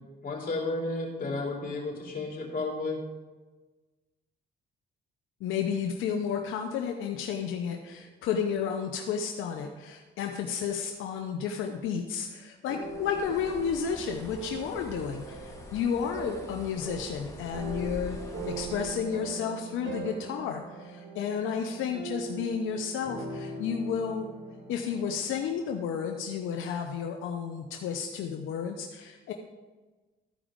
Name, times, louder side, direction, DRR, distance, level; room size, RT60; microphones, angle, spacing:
voice 1, 0.2-3.0, left 3 dB, 45° left, -1 dB, 3.1 m, -32 dB
voice 2, 5.4-18.2 18.4-24.3 24.7-29.3, left 7 dB, 85° left, 3 dB, 0.7 m, -32 dB
sound 1, 12.6-25.3, right 3 dB, 60° right, 2.4 m, -41 dB
Bird, 12.8-19.0, left 1 dB, 15° left, 2.0 m, -44 dB
13.0 x 4.9 x 5.1 m, 1.3 s
cardioid pair, 90°, 20 cm